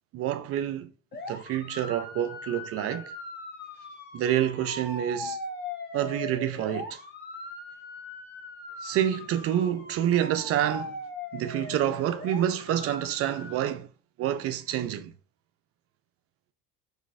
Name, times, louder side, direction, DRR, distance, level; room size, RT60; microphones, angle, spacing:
voice 1, 0.1-0.9 1.3-3.1 4.1-5.4 5.9-7.0 8.8-11.0 11.3-13.9 14.2-15.1, right 11 dB, 35° right, 0.4 m, -28 dB
sound 1, 1.1-13.6, left 2 dB, 20° left, 0.8 m, -40 dB
3.8 x 2.6 x 2.3 m
figure-of-eight pair, 60°, 46 cm